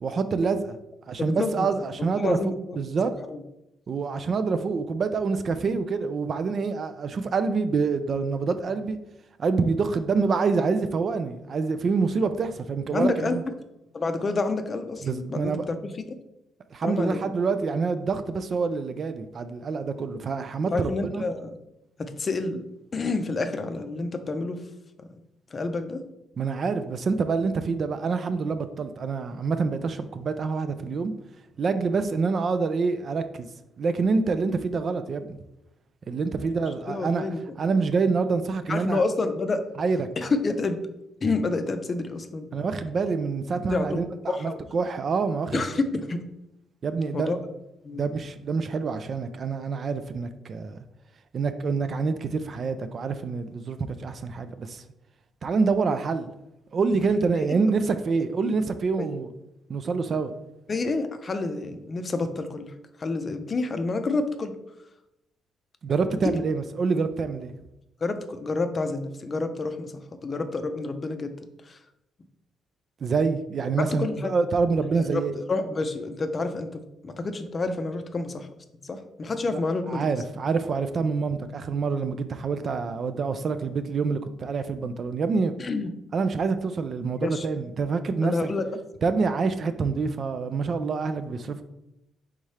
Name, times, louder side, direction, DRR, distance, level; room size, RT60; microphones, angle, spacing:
voice 1, 0.0-0.8 1.1-2.4 2.8-3.1 3.9-9.0 9.4-13.4 15.0-15.6 16.7-21.2 26.4-31.1 31.6-33.5 33.8-35.4 36.1-37.3 37.6-39.0 39.8-40.1 42.5-45.8 46.8-47.3 47.9-50.8 51.3-54.8 55.4-56.3 56.7-59.3 59.7-60.4 65.8-67.5 73.0-75.4 79.5-79.6 79.9-85.5 86.1-88.5 89.0-91.6, right 4 dB, 50° right, 10 dB, 0.3 m, -26 dB
voice 2, 1.2-1.7 2.0-2.8 3.3-3.4 12.9-13.4 13.9-15.8 16.8-17.2 20.7-21.6 22.0-22.6 22.9-24.6 25.0-25.1 25.5-26.0 36.9-37.4 38.7-39.6 40.2-40.8 41.2-42.5 43.7-44.6 45.5-46.2 47.1-47.4 47.8-48.1 59.0-59.1 60.7-62.7 63.0-64.6 66.2-66.4 68.0-69.9 70.2-71.3 71.7-71.8 74.0-74.3 74.8-75.2 75.5-78.5 78.8-80.1 85.6-85.9 87.2-87.5 88.2-88.6, left 3 dB, 35° left, 8 dB, 0.5 m, -28 dB
4.1 x 3.6 x 3.2 m, 0.87 s
cardioid pair, 90°, 0 cm